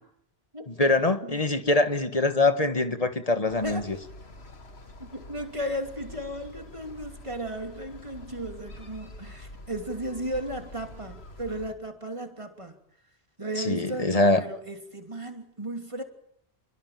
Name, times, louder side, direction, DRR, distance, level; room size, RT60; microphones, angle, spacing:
voice 1, 0.7-3.8 13.6-14.4, left 2 dB, 35° left, 1.6 m, -23 dB
sound 1, 3.5-11.7, left 1 dB, 85° left, 2.4 m, -46 dB
voice 2, 3.6-4.0 5.0-12.8 13.4-16.0, right 1 dB, 30° right, 3.0 m, -35 dB
29.0 x 21.0 x 7.6 m
omnidirectional pair, 1.1 m